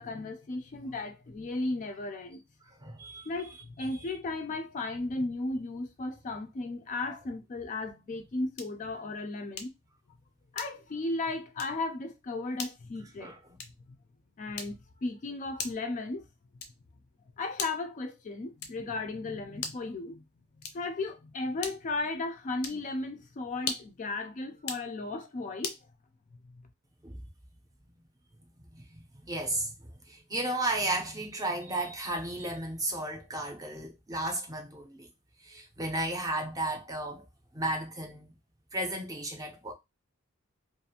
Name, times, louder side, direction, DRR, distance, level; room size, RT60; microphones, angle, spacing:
voice 1, 0.0-2.4 3.3-9.7 10.5-13.3 14.4-16.2 17.4-20.2 20.6-25.8 26.5-26.6, left 2 dB, 35° left, 0.3 m, -35 dB
voice 2, 2.8-3.3 3.8-4.1 13.2-13.4 27.0-27.2 28.7-35.1 35.4-37.3 37.5-38.3 38.7-39.7, right 2 dB, 15° right, 0.5 m, -34 dB
sound 1, 8.5-8.9 9.6-9.9 10.5-11.0 11.5-11.8 12.5-12.8 13.5-13.9 14.5-15.0 15.6-15.9 16.6-16.9 17.5-18.0 18.6-18.9 19.5-19.9 20.6-21.0 21.6-22.0 22.6-22.9 23.6-24.0 24.6-24.9 25.6-25.9, left 5 dB, 85° left, 0.5 m, -40 dB
2.4 x 2.4 x 2.8 m
head